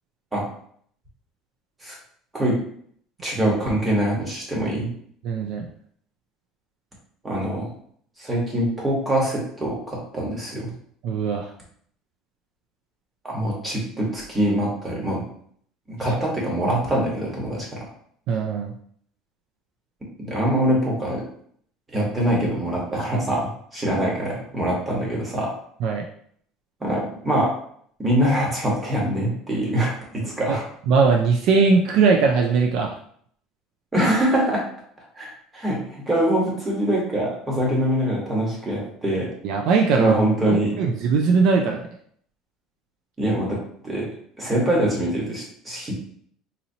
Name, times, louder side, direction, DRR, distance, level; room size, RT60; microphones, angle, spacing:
voice 1, 3.2-4.9 7.2-7.7 8.2-10.7 13.2-15.2 15.9-17.8 20.2-21.2 21.9-25.6 26.8-27.5 28.0-30.6 33.9-34.6 35.1-39.3 40.0-40.7 43.2-44.1 44.4-45.9, right 1 dB, 15° right, -3 dB, 1.2 m, -24 dB
voice 2, 5.2-5.7 11.0-11.5 18.3-18.7 25.8-26.0 30.2-30.6 30.9-33.0 39.4-40.2 40.5-41.8, right 4 dB, 55° right, 2 dB, 0.4 m, -20 dB
4.0 x 2.8 x 2.7 m, 0.62 s
cardioid pair, 155°, 0 cm